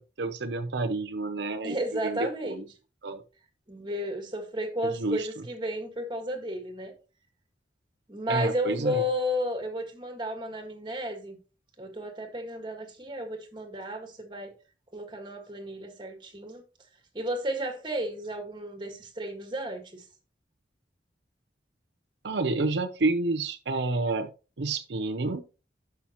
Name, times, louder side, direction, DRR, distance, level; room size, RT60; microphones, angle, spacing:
voice 1, 0.0-1.8 2.0-2.6 3.0-3.2 4.8-5.3 8.3-9.1 22.2-24.3 24.6-25.4, right 3 dB, 75° right, 0.7 m, -29 dB
voice 2, 1.6-2.6 3.7-6.9 8.1-11.4 11.8-14.5 14.9-16.6 17.1-20.0, equal, 25° right, 1.8 m, -33 dB
11.5 x 5.9 x 3.0 m
head